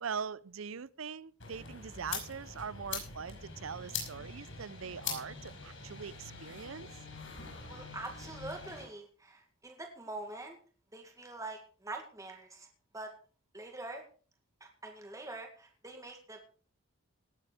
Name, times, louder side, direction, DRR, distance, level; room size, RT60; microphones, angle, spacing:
voice 1, 0.0-6.9, right 6 dB, 70° right, 0.6 m, -42 dB
sound 1, 1.4-8.9, left 5 dB, 65° left, 6.8 m, -43 dB
voice 2, 7.7-10.6 10.9-12.7 12.9-13.1 13.5-14.0 14.6-16.4, right 2 dB, 15° right, 2.0 m, -44 dB
18.5 x 7.9 x 5.0 m
head